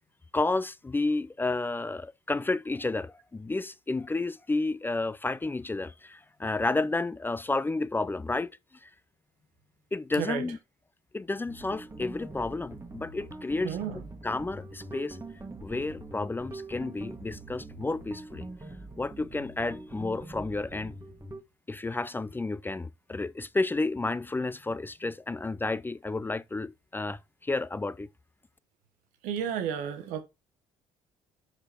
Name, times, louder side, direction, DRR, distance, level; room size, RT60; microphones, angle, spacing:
voice 1, 0.3-8.5 8.8-8.9 9.9-10.6 11.1-13.8 14.2-15.2 15.6-18.5 19.0-20.9 21.7-28.1, left 3 dB, 15° left, 0.4 m, -31 dB
voice 2, 10.1-10.4 13.6-14.1 29.2-30.2, right 8 dB, 80° right, 1.1 m, -32 dB
sound 1, 11.5-21.4, right 2 dB, 20° right, 1.5 m, -44 dB
5.2 x 4.9 x 4.3 m
supercardioid pair, 65°, 13 cm